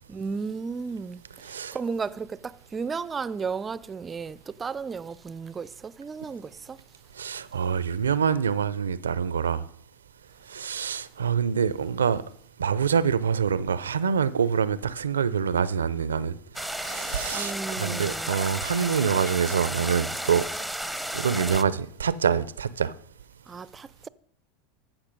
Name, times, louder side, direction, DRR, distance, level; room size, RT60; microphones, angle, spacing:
voice 1, 0.1-1.2 1.7-6.8 17.3-18.3 23.5-24.1, right 5 dB, 25° right, 0.4 m, -34 dB
voice 2, 1.4-1.8 7.2-9.6 10.5-12.2 12.6-16.4 16.7-20.4 21.1-22.9, right 7 dB, 90° right, 0.5 m, -26 dB
sound 1, 16.5-21.6, right 1 dB, ahead, 0.7 m, -33 dB
15.0 x 5.9 x 5.2 m
hypercardioid pair, 90°, 0 cm